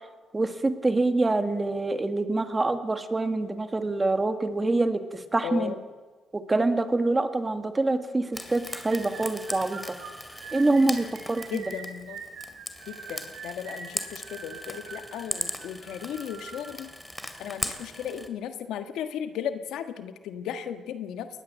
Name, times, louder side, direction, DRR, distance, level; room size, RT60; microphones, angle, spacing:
voice 1, 0.3-5.8 6.3-10.0 10.5-11.6, right 2 dB, 20° right, 8 dB, 1.9 m, -25 dB
voice 2, 5.4-5.8 11.5-12.2 12.9-16.9 17.4-21.3, left 8 dB, 85° left, 8 dB, 1.5 m, -35 dB
Frying (food), 8.3-18.3, left 1 dB, 5° left, 2.5 m, -39 dB
sound 1, 8.7-16.7, right 5 dB, 85° right, 6.8 m, -43 dB
22.0 x 19.5 x 7.5 m, 1.4 s
cardioid pair, 90°, 0 cm